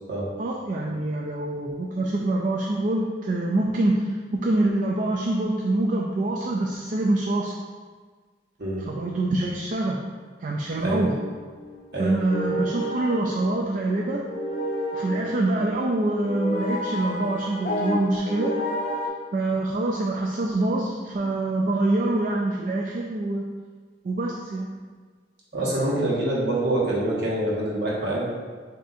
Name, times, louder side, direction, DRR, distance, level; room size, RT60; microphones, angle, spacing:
voice 1, 0.4-7.6 8.8-10.0 10.4-11.2 12.0-14.3 14.9-18.5 19.3-23.5 24.0-24.7 25.7-26.1, right 2 dB, 45° right, -1 dB, 0.4 m, -25 dB
sound 1, 11.1-19.1, left 1 dB, 45° left, 0.5 m, -31 dB
voice 2, 25.5-28.3, right 1 dB, 60° right, -6 dB, 1.3 m, -25 dB
7.4 x 2.7 x 2.6 m, 1.5 s
head